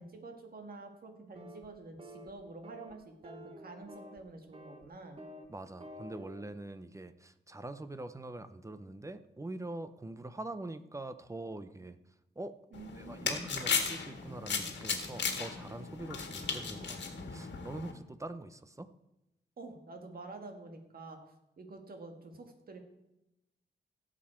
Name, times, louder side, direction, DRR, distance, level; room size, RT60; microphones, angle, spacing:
voice 1, 0.0-5.2 12.7-13.5 19.6-21.2 21.6-22.8, right 3 dB, 55° right, 4 dB, 1.8 m, -48 dB
sound 1, 1.3-1.7 2.0-2.3 2.6-2.9 3.2-4.2 4.5-4.8 5.2-5.5 5.8-6.4, equal, 30° right, 1.3 m, -49 dB
voice 2, 5.5-12.0 12.4-12.5 12.9-17.0 17.3-18.9, right 2 dB, 15° right, 11 dB, 0.6 m, -44 dB
sound 2, 12.7-17.9, left 5 dB, 75° left, 1.7 m, -36 dB
16.0 x 7.5 x 4.4 m, 0.91 s
wide cardioid pair, 115°, 18 cm